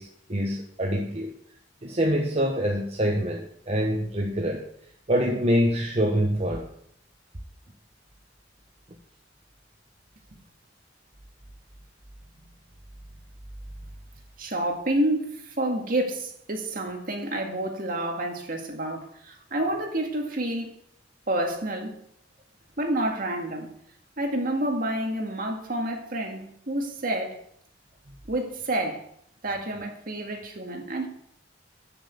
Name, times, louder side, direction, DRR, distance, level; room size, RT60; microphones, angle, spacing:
voice 1, 0.0-1.3 1.8-4.6 5.1-6.7, equal, 35° right, 0 dB, 1.2 m, -25 dB
voice 2, 14.4-20.7 21.3-22.0 22.8-23.7 24.2-27.4 28.3-29.0 29.4-31.1, right 1 dB, 50° right, 2 dB, 2.0 m, -29 dB
9.2 x 7.1 x 7.0 m, 0.70 s
head